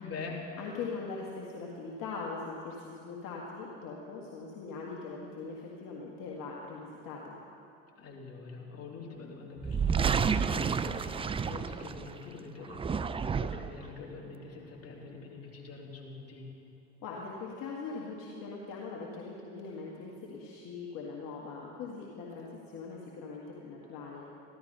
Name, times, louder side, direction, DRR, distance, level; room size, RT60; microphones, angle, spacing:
voice 1, 0.0-0.4 8.0-16.5, left 4 dB, 40° left, -2 dB, 3.1 m, -45 dB
voice 2, 0.6-7.4 17.0-24.4, left 4 dB, 55° left, -3 dB, 1.8 m, -41 dB
sound 1, 9.6-12.2 12.6-13.8, right 6 dB, 15° right, 0.3 m, -30 dB
15.0 x 12.5 x 5.5 m, 2.8 s
hypercardioid pair, 65°, 39 cm